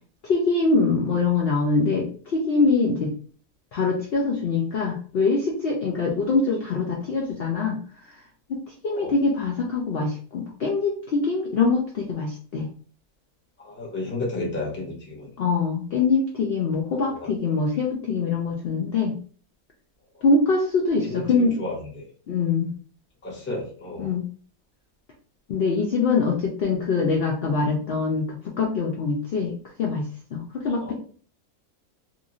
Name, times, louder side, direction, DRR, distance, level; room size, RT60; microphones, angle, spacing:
voice 1, 0.2-3.1 3.7-7.8 8.5-12.7 15.4-19.2 20.2-21.6 22.3-22.7 24.0-24.2 25.5-29.5 29.8-30.0 30.3-30.9, left 4 dB, 85° left, -1 dB, 0.5 m, -23 dB
voice 2, 13.6-15.3 17.0-17.3 21.1-21.2 21.6-22.0 23.2-24.1 30.8-30.9, left 2 dB, 15° left, -4 dB, 0.4 m, -32 dB
3.0 x 2.5 x 2.4 m, 0.43 s
omnidirectional pair, 1.7 m